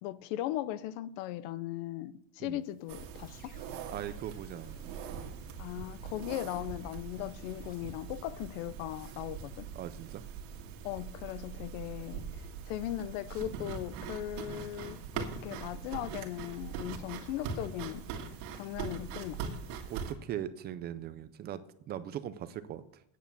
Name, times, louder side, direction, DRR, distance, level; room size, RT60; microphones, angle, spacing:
voice 1, 0.0-3.5 5.6-9.7 10.8-18.1 18.5-19.4, left 14 dB, 80° left, 0.8 m, -38 dB
sound 1, 2.5-7.8, left 5 dB, 20° left, 1.2 m, -61 dB
sound 2, 2.9-20.1, right 6 dB, 90° right, 2.0 m, -42 dB
voice 2, 3.9-5.0 9.7-10.2 19.9-23.0, right 11 dB, 30° right, 0.3 m, -40 dB
9.4 x 8.2 x 6.8 m
cardioid pair, 170°, 38 cm